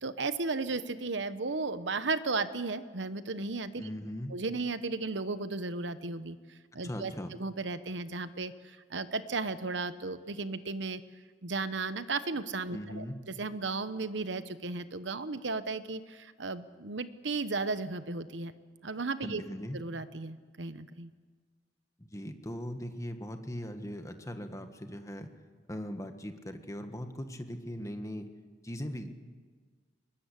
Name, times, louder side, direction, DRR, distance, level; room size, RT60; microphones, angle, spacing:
voice 1, 0.0-3.9 4.3-11.0 11.4-18.5 18.8-19.4 19.7-21.1, right 3 dB, 70° right, 12 dB, 1.1 m, -35 dB
voice 2, 3.8-4.4 6.7-7.4 12.7-13.2 19.2-19.8 22.0-25.3 25.7-28.3 28.6-29.1, equal, 15° left, 7 dB, 1.6 m, -39 dB
22.5 x 20.5 x 8.3 m, 1.5 s
head